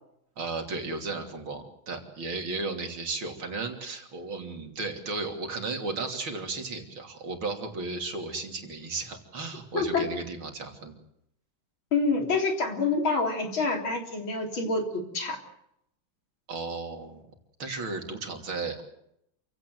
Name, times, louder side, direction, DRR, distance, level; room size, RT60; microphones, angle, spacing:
voice 1, 0.4-11.0 16.5-17.2 17.6-18.8, right 3 dB, 75° right, 4 dB, 3.8 m, -34 dB
voice 2, 9.7-10.1 11.9-15.4, left 3 dB, 70° left, 3 dB, 4.3 m, -27 dB
27.5 x 16.5 x 7.9 m, 0.77 s
omnidirectional pair, 2.3 m